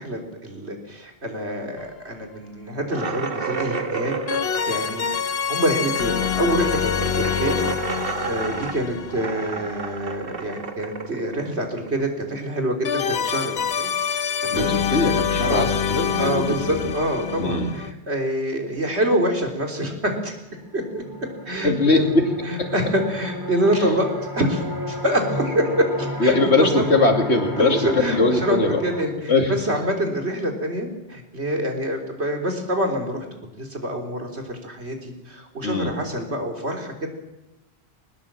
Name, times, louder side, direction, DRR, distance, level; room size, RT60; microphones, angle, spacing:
voice 1, 0.0-4.1 4.7-5.1 5.5-7.6 8.0-13.9 14.4-14.7 15.5-15.7 16.2-20.3 20.7-21.0 21.5-22.2 22.4-26.3 26.8-26.9 27.6-33.3 33.6-37.1, right 1 dB, 80° right, 3 dB, 3.7 m, -26 dB
sound 1, 1.8-1.9 4.3-10.3 12.8-17.9, left 7 dB, 70° left, 1.1 m, -26 dB
sound 2, 2.9-12.3, right 4 dB, 60° right, 1.7 m, -31 dB
voice 2, 14.5-16.9 17.4-17.7 21.6-22.3 22.6-22.7 23.8-23.9 26.2-28.8 29.2-29.6 35.6-36.0, left 2 dB, 85° left, 5 dB, 2.7 m, -21 dB
sound 3, 20.6-29.1, equal, 20° right, 2.4 m, -33 dB
21.0 x 19.5 x 7.5 m, 1.0 s
omnidirectional pair, 1.1 m